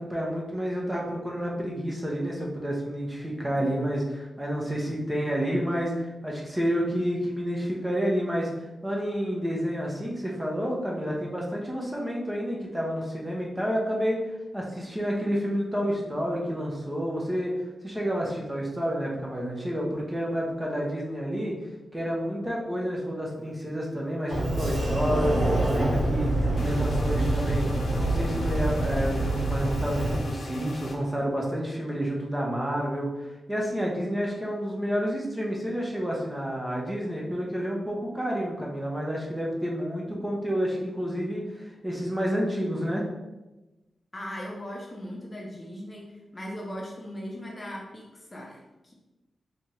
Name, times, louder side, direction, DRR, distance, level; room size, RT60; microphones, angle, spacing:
voice 1, 0.0-21.6 21.9-26.3 26.5-43.0, equal, 15° right, -2 dB, 0.9 m, -29 dB
Sliding door, 24.3-30.2, right 1 dB, 90° right, 1.4 m, -26 dB
sound 1, 26.6-31.0, left 2 dB, 70° left, 0.6 m, -41 dB
voice 2, 44.1-48.9, equal, 25° left, -1 dB, 0.7 m, -39 dB
4.1 x 2.9 x 3.2 m, 1.0 s
wide cardioid pair, 90°, 0 cm